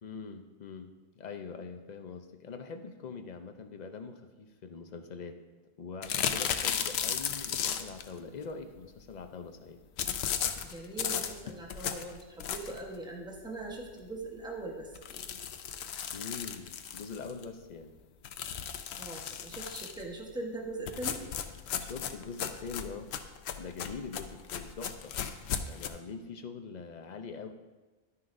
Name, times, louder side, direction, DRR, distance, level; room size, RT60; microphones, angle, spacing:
voice 1, 0.0-5.4 5.8-9.8 16.1-17.9 21.8-23.1 23.6-25.2 25.6-27.5, left 5 dB, 50° left, 7 dB, 0.7 m, -43 dB
sound 1, 6.0-8.1 10.0-12.9 13.4-13.5 13.8-13.9 14.2-14.3 14.9-17.4 18.2-20.0 20.9-25.9, left 8 dB, 80° left, 0.9 m, -35 dB
voice 2, 10.7-15.2 18.9-21.2, right 2 dB, 5° right, -1 dB, 1.0 m, -41 dB
11.0 x 9.7 x 2.6 m, 1.2 s
omnidirectional pair, 1.1 m